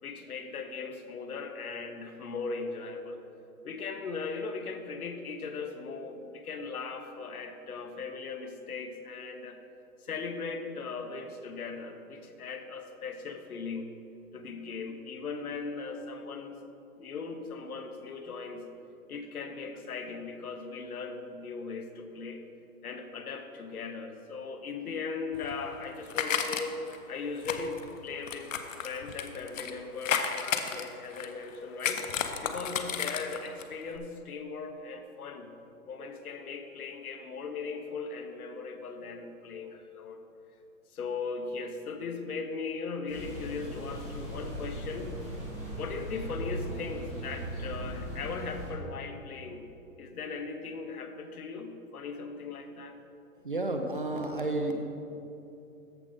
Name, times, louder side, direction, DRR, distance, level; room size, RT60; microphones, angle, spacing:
voice 1, 0.0-3.2 3.6-9.6 10.0-13.9 14.3-16.6 17.0-18.7 19.1-22.4 22.8-32.1 32.4-35.5 35.9-40.2 40.9-45.1 45.7-49.6 50.0-53.0, left 4 dB, 80° left, 7 dB, 1.0 m, -38 dB
sound 1, 25.3-27.0 27.4-29.7 30.0-31.4 31.8-33.6 33.9-34.0, left 7 dB, 60° left, 0.7 m, -33 dB
sound 2, 43.1-48.7, right 1 dB, 15° left, 1.7 m, -38 dB
voice 2, 53.4-54.8, right 2 dB, 40° right, 4 dB, 0.4 m, -31 dB
13.5 x 4.8 x 4.0 m, 2.8 s
hypercardioid pair, 175°, 43 cm